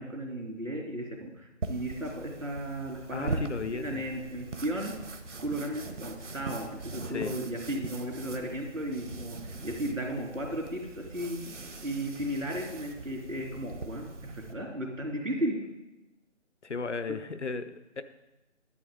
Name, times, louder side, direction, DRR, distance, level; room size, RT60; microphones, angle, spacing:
voice 1, 0.0-3.4 3.7-4.9 5.4-11.4 11.8-15.6, right 1 dB, 85° right, 0 dB, 2.8 m, -35 dB
sound 1, 1.6-14.5, right 3 dB, 70° right, 1.1 m, -41 dB
voice 2, 3.1-4.0 7.1-7.4 16.6-18.0, left 4 dB, 65° left, 10 dB, 0.7 m, -35 dB
11.0 x 7.6 x 3.7 m, 0.96 s
figure-of-eight pair, 155°, 38 cm